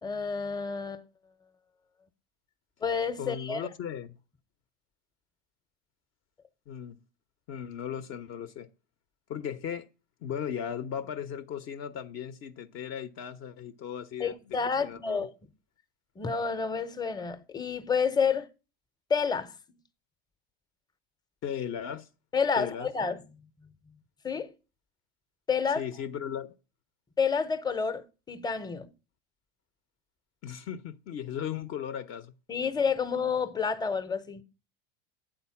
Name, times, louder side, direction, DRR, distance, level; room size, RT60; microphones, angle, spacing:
voice 1, 0.0-1.0 2.8-3.7 14.2-15.3 16.2-18.5 19.1-19.5 22.3-23.2 23.6-23.7 24.2-24.5 25.5-25.8 27.2-28.9 32.5-34.4, left 5 dB, 15° left, 0.8 m, -29 dB
voice 2, 3.2-4.2 6.7-7.0 7.5-8.7 9.3-9.9 10.2-15.2 21.4-22.1 22.6-22.9 25.8-26.5 30.4-32.3, left 8 dB, 45° left, 0.7 m, -37 dB
8.7 x 4.0 x 5.7 m
hypercardioid pair, 100°, 30 cm